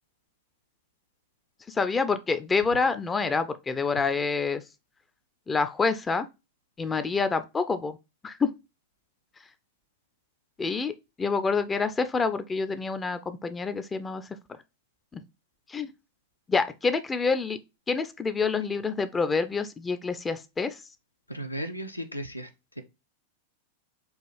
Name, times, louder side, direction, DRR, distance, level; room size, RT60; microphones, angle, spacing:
voice 1, 1.7-4.6 5.5-6.3 6.8-8.0 8.2-8.5 10.6-10.9 11.2-14.2 15.1-15.2 15.7-15.9 16.5-17.6 17.9-20.8, left 4 dB, 15° left, 0.3 m, -27 dB
voice 2, 21.3-22.5, equal, 85° left, 0.5 m, -35 dB
4.6 x 2.4 x 3.1 m
figure-of-eight pair, 90°, 0 cm